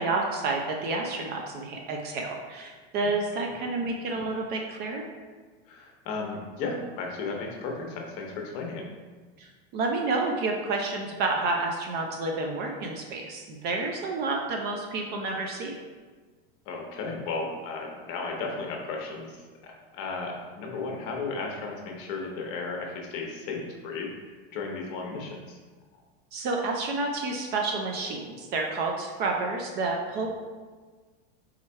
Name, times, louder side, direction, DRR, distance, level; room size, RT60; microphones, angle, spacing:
voice 1, 0.0-5.0 9.4-15.8 26.3-30.3, right 3 dB, 35° right, 1 dB, 0.4 m, -30 dB
voice 2, 5.7-8.8 16.7-25.6, left 3 dB, 45° left, 1 dB, 0.9 m, -35 dB
3.6 x 3.2 x 4.3 m, 1.4 s
supercardioid pair, 150°, 31 cm